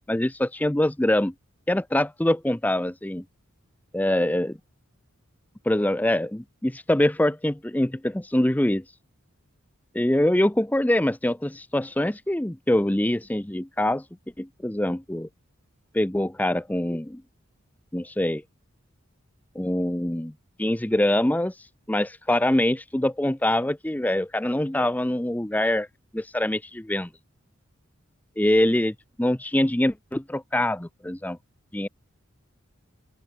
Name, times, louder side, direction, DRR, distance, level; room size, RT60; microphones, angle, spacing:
voice 1, 0.1-1.3 1.7-3.2 3.9-4.6 5.7-8.8 9.9-14.0 14.4-15.3 15.9-17.2 17.9-18.4 19.6-20.3 20.6-25.9 26.1-27.1 28.4-31.4 31.7-31.9, left 1 dB, 10° left, 0.5 m, -24 dB
open air
head